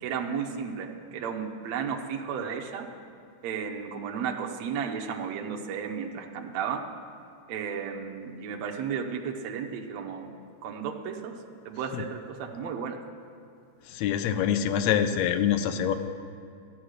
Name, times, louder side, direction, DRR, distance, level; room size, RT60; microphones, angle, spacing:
voice 1, 0.0-2.9 3.4-6.8 7.5-10.3 10.6-11.4 11.7-13.0, right 7 dB, 70° right, 1 dB, 2.1 m, -33 dB
voice 2, 13.9-15.9, left 9 dB, 75° left, 10 dB, 1.9 m, -25 dB
13.5 x 10.5 x 6.4 m, 2.5 s
omnidirectional pair, 3.3 m